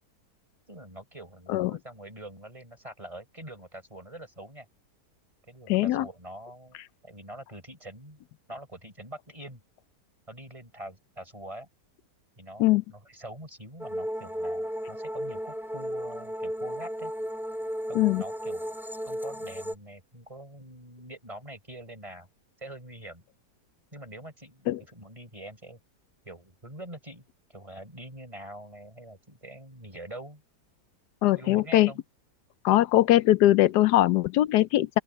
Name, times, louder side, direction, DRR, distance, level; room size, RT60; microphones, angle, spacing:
voice 1, 0.7-4.7 5.5-6.8 7.0-8.2 8.5-9.6 10.3-11.7 12.4-17.1 17.9-18.8 19.0-22.3 22.6-23.2 23.9-25.8 26.2-27.2 27.5-30.4 31.4-32.0, right 1 dB, 20° right, 5.4 m, -44 dB
voice 2, 5.7-6.0 12.6-12.8 17.9-18.2 24.7-24.8 31.2-31.9 32.6-35.0, left 15 dB, 85° left, 1.2 m, -21 dB
sound 1, 13.8-19.7, equal, ahead, 1.6 m, -34 dB
open air
omnidirectional pair, 1.7 m